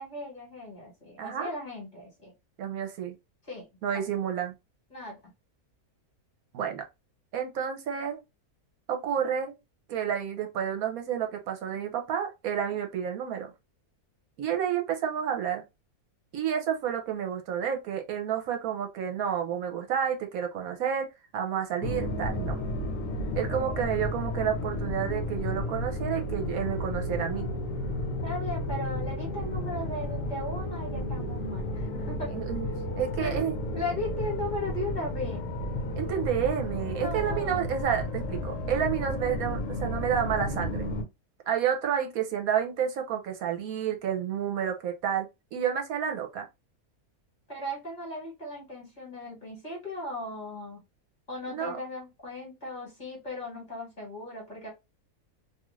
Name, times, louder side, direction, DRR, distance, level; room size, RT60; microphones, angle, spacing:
voice 1, 0.0-2.3 3.4-3.7 4.9-5.2 28.2-32.3 33.2-33.5 33.7-35.4 36.9-37.7 47.5-50.8 51.3-54.7, left 1 dB, 30° left, 1.4 m, -37 dB
voice 2, 1.2-1.5 2.6-3.2 3.8-4.5 6.5-6.8 7.3-8.2 8.9-9.5 9.9-13.5 14.4-15.6 16.3-22.6 23.3-27.5 32.3-32.7 33.0-33.8 36.0-40.9 41.5-46.5 51.5-51.8, right 8 dB, 75° right, 1.1 m, -30 dB
sound 1, 21.8-41.0, left 1 dB, 70° left, 0.9 m, -32 dB
2.7 x 2.4 x 3.0 m
omnidirectional pair, 1.6 m